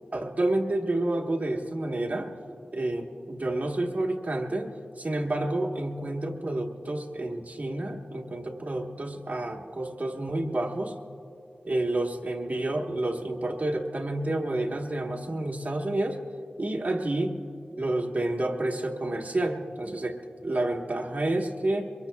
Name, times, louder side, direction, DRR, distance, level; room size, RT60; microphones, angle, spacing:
voice 1, 0.1-2.3 2.7-10.9 11.6-16.2 16.6-17.4 17.8-21.9, right 1 dB, 50° right, 1 dB, 1.3 m, -29 dB
23.5 x 23.0 x 2.3 m, 2.6 s
wide cardioid pair, 80°, 3 cm